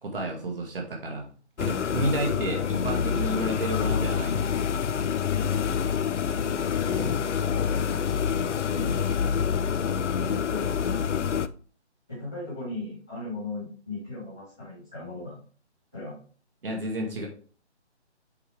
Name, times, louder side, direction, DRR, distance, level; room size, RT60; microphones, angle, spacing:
voice 1, 0.0-1.3 1.6-4.5 16.6-17.3, right 1 dB, 50° right, 0 dB, 2.0 m, -31 dB
sound 1, 1.6-11.5, left 7 dB, 85° left, 0.6 m, -27 dB
voice 2, 5.3-5.8 6.8-7.2 8.6-8.9 10.3-10.8 12.1-15.3 15.9-16.2, left 2 dB, 5° left, -13 dB, 0.7 m, -37 dB
8.0 x 4.9 x 3.2 m, 0.41 s
hypercardioid pair, 175°, 35 cm